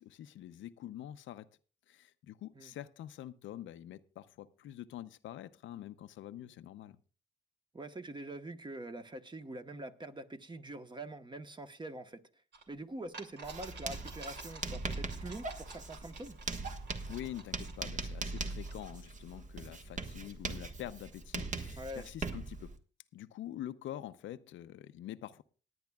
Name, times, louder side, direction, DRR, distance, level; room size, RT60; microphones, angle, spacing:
voice 1, 0.0-1.5 1.9-7.0 17.1-22.7 23.1-25.4, left 12 dB, 75° left, 0.6 m, -46 dB
voice 2, 7.7-12.2 12.7-16.4 21.8-22.1, right 2 dB, 25° right, 1.2 m, -44 dB
sound 1, 12.5-12.6 13.1-18.9, right 4 dB, 60° right, 2.7 m, -52 dB
Writing, 13.4-22.7, right 3 dB, 40° right, 1.5 m, -41 dB
25.5 x 9.5 x 2.3 m
cardioid pair, 90°, 20 cm